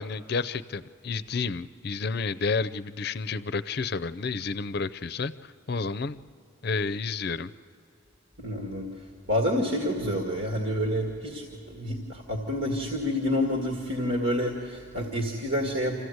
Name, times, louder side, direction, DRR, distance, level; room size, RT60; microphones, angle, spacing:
voice 1, 0.0-6.2 6.6-7.5, left 4 dB, 55° left, 15 dB, 0.5 m, -30 dB
voice 2, 8.4-16.0, left 1 dB, 70° right, 0 dB, 2.0 m, -28 dB
26.5 x 15.5 x 8.0 m, 2.7 s
head